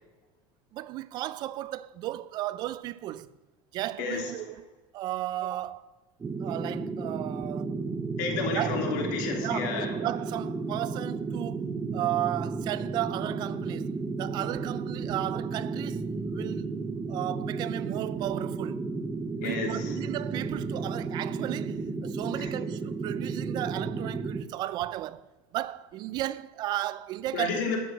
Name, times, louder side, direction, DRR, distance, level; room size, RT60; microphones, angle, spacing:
voice 1, 0.7-3.3 3.7-4.7 4.9-5.9 6.4-7.8 8.5-8.8 9.4-11.7 11.9-16.8 17.1-18.9 19.4-25.3 25.5-27.6, right 14 dB, 45° right, 0.5 m, -34 dB
voice 2, 4.0-4.3 8.2-9.9 19.4-19.9 22.3-22.5 27.3-27.8, left 5 dB, 80° left, 3.0 m, -31 dB
sound 1, 6.2-24.5, right 4 dB, 15° right, 0.7 m, -33 dB
12.0 x 7.7 x 6.3 m
cardioid pair, 145°, 10 cm